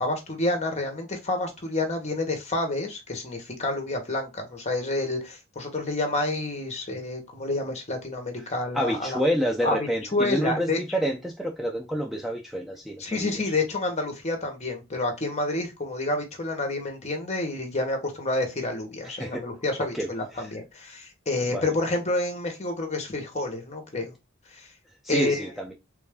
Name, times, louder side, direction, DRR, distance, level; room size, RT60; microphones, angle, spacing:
voice 1, 0.0-9.2 9.6-10.8 13.0-24.1 24.5-24.7 25.1-25.5, left 2 dB, 35° left, 0.9 m, -29 dB
voice 2, 8.7-13.4 19.0-19.4 19.9-20.1 21.5-21.6 25.0-25.7, equal, ahead, 0.4 m, -28 dB
3.2 x 2.6 x 3.4 m
head